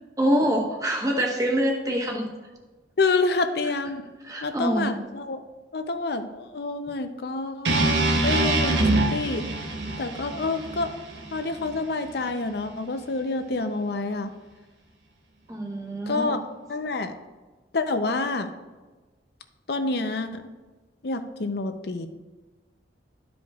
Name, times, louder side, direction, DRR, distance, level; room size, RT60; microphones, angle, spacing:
voice 1, 0.2-2.3 4.2-5.0 15.5-16.4, equal, 20° right, 0 dB, 1.1 m, -25 dB
voice 2, 3.0-4.0 4.4-5.4 5.7-9.4 10.0-10.9 11.3-14.3 16.1-16.4 16.7-17.1 17.7-18.5 19.7-20.4 21.0-22.1, left 3 dB, 60° left, 8 dB, 0.6 m, -28 dB
sound 1, 7.6-11.8, right 2 dB, 80° right, 1.1 m, -24 dB
12.0 x 5.1 x 2.4 m, 1.3 s
head